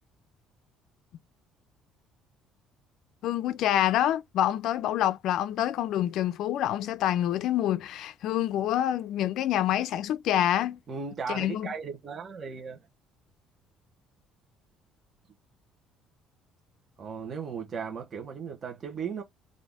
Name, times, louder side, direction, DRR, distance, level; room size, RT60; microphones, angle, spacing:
voice 1, 3.2-10.8 11.3-11.7, left 12 dB, 65° left, 0.5 m, -27 dB
voice 2, 10.9-12.9 17.0-19.2, right 6 dB, 30° right, 1.2 m, -36 dB
3.9 x 2.6 x 3.5 m
cardioid pair, 140°, 0 cm